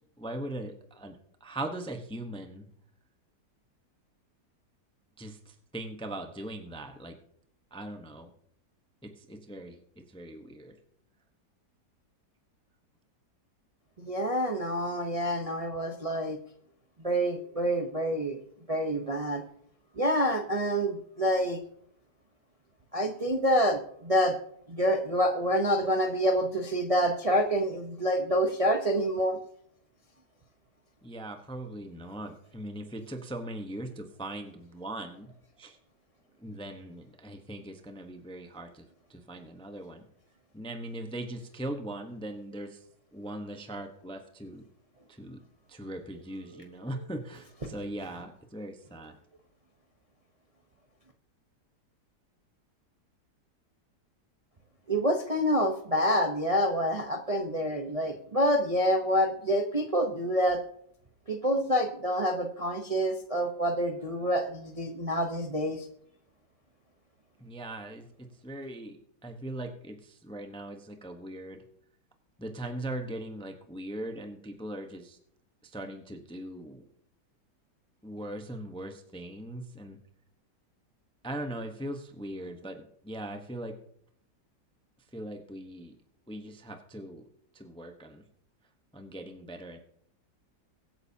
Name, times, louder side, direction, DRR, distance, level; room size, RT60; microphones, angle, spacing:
voice 1, 0.2-2.7 5.2-7.2 7.7-8.3 9.0-10.8 31.0-35.3 35.6-35.8 36.4-38.8 39.1-40.0 40.5-42.8 43.1-44.7 45.1-45.4 45.7-49.1 67.4-69.0 69.2-71.6 72.4-75.2 75.6-76.8 78.0-80.0 81.2-83.8 85.1-86.0 86.3-87.3 87.5-88.2 88.9-89.8, right 1 dB, 5° left, 5 dB, 0.7 m, -40 dB
voice 2, 14.0-16.4 17.0-18.4 18.7-19.4 20.0-21.6 22.9-24.3 24.7-29.4 54.9-60.6 61.3-65.9, equal, 25° right, 3 dB, 0.8 m, -27 dB
23.0 x 8.9 x 2.8 m, 0.67 s
omnidirectional pair, 1.8 m